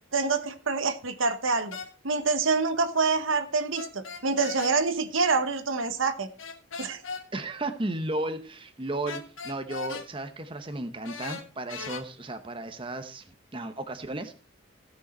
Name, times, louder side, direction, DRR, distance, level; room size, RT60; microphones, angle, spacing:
voice 1, 0.1-1.8 2.0-6.3 6.8-7.0, right 4 dB, 75° right, 10 dB, 1.2 m, -26 dB
sound 1, 1.7-1.9 3.7-4.8 6.4-7.2 9.1-10.1 11.0-12.0, left 5 dB, 75° left, 1.5 m, -38 dB
voice 2, 7.3-13.2 13.5-14.3, right 2 dB, 25° right, 8 dB, 0.8 m, -34 dB
16.0 x 6.3 x 4.3 m, 0.36 s
head